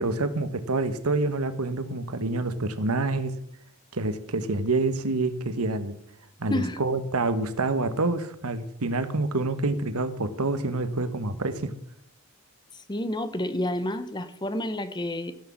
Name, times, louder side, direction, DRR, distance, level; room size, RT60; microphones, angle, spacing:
voice 1, 0.0-3.3 3.9-6.0 6.4-11.7, right 2 dB, 85° right, 11 dB, 1.2 m, -27 dB
voice 2, 12.9-15.3, left 1 dB, 20° left, 11 dB, 0.8 m, -29 dB
15.0 x 6.3 x 7.2 m, 0.74 s
head